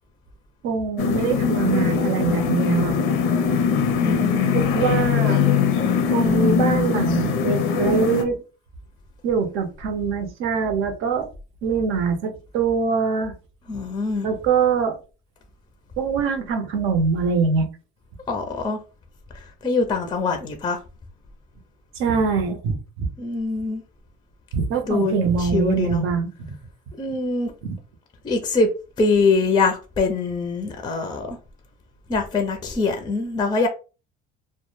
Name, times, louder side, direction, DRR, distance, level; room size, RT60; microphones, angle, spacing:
voice 1, 0.6-3.0 4.5-5.4 6.1-8.4 9.2-11.3 11.6-13.3 14.2-15.0 16.0-17.7 22.0-23.1 24.5-26.5, right 5 dB, 75° right, 0.6 m, -23 dB
sound 1, 1.0-8.2, left 6 dB, 80° left, 0.5 m, -21 dB
voice 2, 3.9-4.5 13.7-14.3 18.3-18.8 19.3-20.8 23.2-23.8 24.8-26.0 27.0-27.5 28.2-28.7 29.0-31.4 32.1-33.7, left 4 dB, 20° left, 0.4 m, -23 dB
2.1 x 2.0 x 3.0 m
cardioid pair, 120°, 21 cm